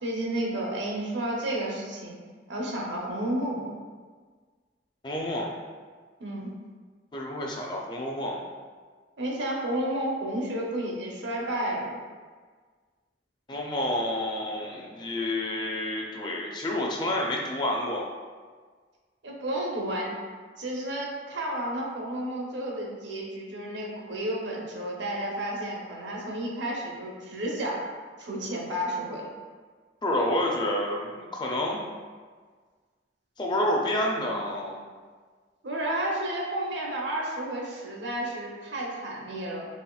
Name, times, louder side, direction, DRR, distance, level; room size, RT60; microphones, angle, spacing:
voice 1, 0.0-2.2 2.5-3.7 6.2-6.5 9.2-12.0 19.2-20.1 20.6-27.9 28.2-29.3 35.6-39.7, right 1 dB, 80° right, -2 dB, 0.8 m, -31 dB
voice 2, 5.0-5.5 7.1-8.4 13.5-18.0 30.0-31.8 33.4-34.8, left 1 dB, 25° left, -1 dB, 0.4 m, -29 dB
4.1 x 3.7 x 2.3 m, 1.5 s
head